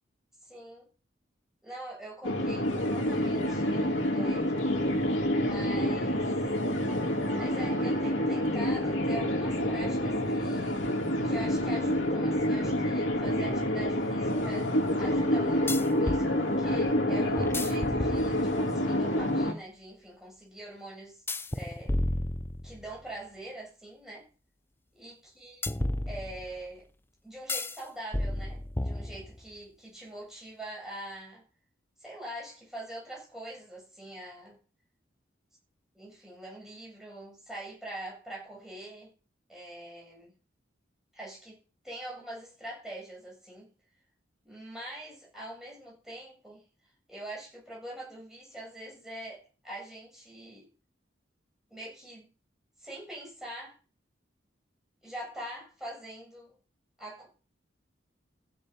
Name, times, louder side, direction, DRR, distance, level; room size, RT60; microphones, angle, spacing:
voice 1, 0.4-0.9 1.6-4.9 5.4-6.2 7.4-10.9 11.2-14.7 15.0-21.2 21.5-21.9 22.6-24.3 25.0-25.6 26.1-26.9 27.2-31.4 32.0-34.6 35.9-39.1 39.5-40.3 41.1-43.7 44.4-46.6 47.1-50.7 51.7-52.3 52.8-53.8 55.0-56.5 57.0-57.3, right 1 dB, 5° right, -4 dB, 7.8 m, -44 dB
sound 1, 2.2-19.5, left 1 dB, 85° left, 2.7 m, -28 dB
sound 2, 13.3-13.4 15.7-16.3 17.4-18.7 21.3-23.0 25.6-26.6 27.5-27.8 28.1-29.5, left 1 dB, 10° left, 0.5 m, -32 dB
15.0 x 6.6 x 5.9 m, 0.36 s
head